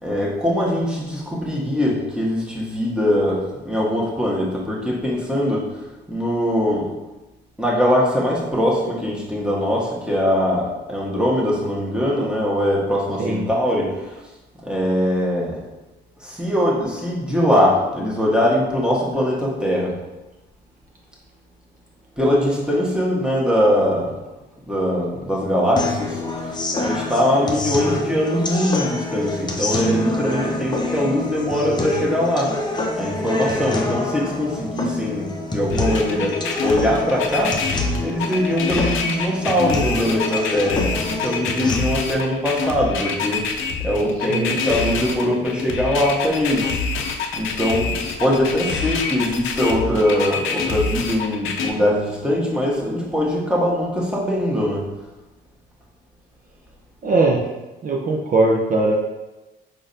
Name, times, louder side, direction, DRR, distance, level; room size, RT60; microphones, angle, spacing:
voice 1, 0.0-5.7 6.1-6.9 7.6-14.2 14.6-15.6 16.2-19.9 22.2-24.1 24.7-32.6 33.0-37.6 38.0-46.8 47.3-54.9, equal, 5° right, -4 dB, 1.3 m, -21 dB
voice 2, 13.2-13.5 44.3-44.6 57.0-57.4 57.8-58.9, right 2 dB, 45° right, -1 dB, 0.6 m, -19 dB
sound 1, 25.8-41.8, left 2 dB, 20° left, 0.7 m, -27 dB
sound 2, 35.7-51.7, left 4 dB, 85° left, 0.6 m, -26 dB
5.1 x 3.9 x 2.7 m, 1.1 s
cardioid pair, 90°, 20 cm